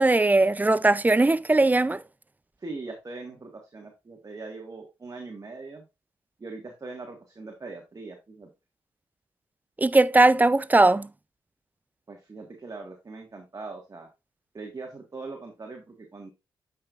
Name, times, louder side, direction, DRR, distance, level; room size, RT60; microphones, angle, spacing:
voice 1, 0.0-2.0 9.8-11.1, right 2 dB, 20° right, 0.5 m, -19 dB
voice 2, 2.6-5.9 6.4-8.5 12.1-14.1 14.5-16.3, right 3 dB, 40° right, 1.7 m, -41 dB
8.6 x 5.4 x 2.5 m
supercardioid pair, 50°, 9 cm